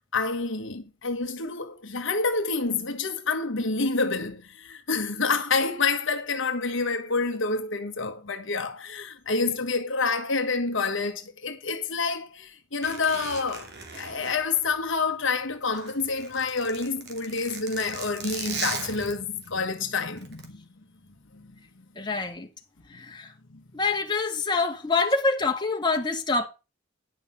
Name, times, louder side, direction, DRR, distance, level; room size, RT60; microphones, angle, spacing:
voice 1, 0.1-13.7 13.9-20.6 21.3-21.4, left 4 dB, 65° left, 1.4 m, -28 dB
Zipper (clothing), 12.8-15.2 15.5-19.5 20.2-20.5, right 5 dB, 55° right, 2.7 m, -38 dB
voice 2, 22.0-22.5 22.9-23.3 23.7-26.5, left 3 dB, 20° left, 1.8 m, -26 dB
11.0 x 6.2 x 5.5 m
head